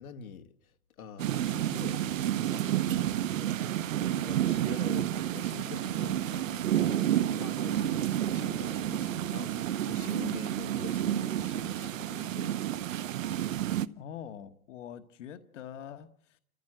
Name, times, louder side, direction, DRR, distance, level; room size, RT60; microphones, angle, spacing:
voice 1, 0.0-12.6, left 7 dB, 85° left, 1.8 m, -46 dB
sound 1, 1.2-13.9, right 12 dB, 65° right, 1.0 m, -30 dB
voice 2, 14.0-16.4, left 9 dB, 60° left, 1.4 m, -44 dB
29.0 x 15.0 x 7.7 m
hypercardioid pair, 160°, 42 cm